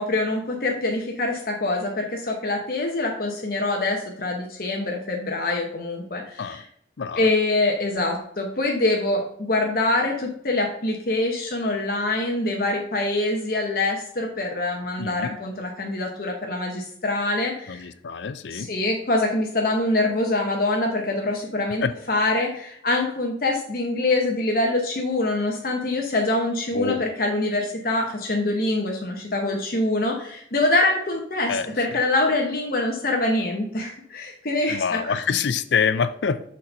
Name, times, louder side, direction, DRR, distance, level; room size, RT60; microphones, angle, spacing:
voice 1, 0.0-6.6 7.2-17.9 18.5-35.2, left 2 dB, 55° left, 1 dB, 0.9 m, -25 dB
voice 2, 7.0-7.3 15.0-15.4 17.7-18.7 21.8-21.9 26.7-27.1 31.5-32.0 34.7-36.4, left 6 dB, 75° left, 13 dB, 0.5 m, -26 dB
6.5 x 4.3 x 5.3 m, 0.68 s
head